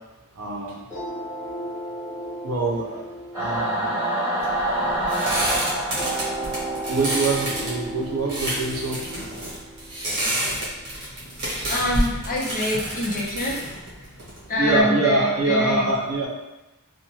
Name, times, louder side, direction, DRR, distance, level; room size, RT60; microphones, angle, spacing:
voice 1, 0.4-0.8 2.4-3.0 3.4-4.0 6.7-9.2 14.6-16.3, right 3 dB, 75° right, -1 dB, 0.6 m, -24 dB
sound 1, 0.9-5.3 5.9-10.9, right 1 dB, 10° left, 1.1 m, -35 dB
Singing / Musical instrument, 3.3-8.0, right 1 dB, 10° right, 1.0 m, -27 dB
sound 2, 4.4-14.8, equal, 50° right, 1.0 m, -29 dB
voice 2, 11.7-14.1 14.5-15.9, left 1 dB, 40° left, -4 dB, 0.6 m, -25 dB
2.5 x 2.1 x 3.0 m, 0.99 s
head